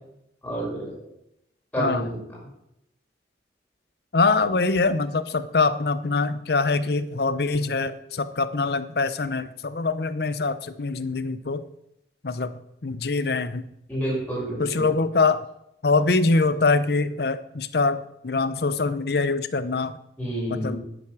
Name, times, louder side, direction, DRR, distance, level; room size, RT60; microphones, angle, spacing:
voice 1, 0.4-0.9 1.7-2.2 13.9-14.9 20.2-20.8, right 1 dB, 10° left, -5 dB, 5.6 m, -29 dB
voice 2, 4.1-11.6 12.2-13.7 14.6-15.5 15.8-20.0 20.5-20.8, left 3 dB, 65° left, 13 dB, 0.7 m, -24 dB
10.5 x 8.3 x 6.1 m, 0.80 s
head